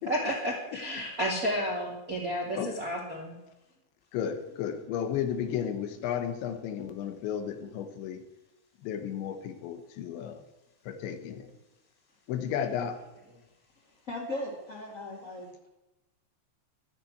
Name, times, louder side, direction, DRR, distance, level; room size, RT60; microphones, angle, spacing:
voice 1, 0.1-3.4, equal, 30° right, -2 dB, 1.7 m, -31 dB
voice 2, 2.4-2.8 4.1-8.2 8.8-10.4 10.9-11.5 12.3-13.0, left 8 dB, 85° left, 8 dB, 3.5 m, -33 dB
voice 3, 14.1-15.5, left 1 dB, 25° left, -5 dB, 2.0 m, -37 dB
12.0 x 10.0 x 8.0 m, 0.97 s
omnidirectional pair, 5.1 m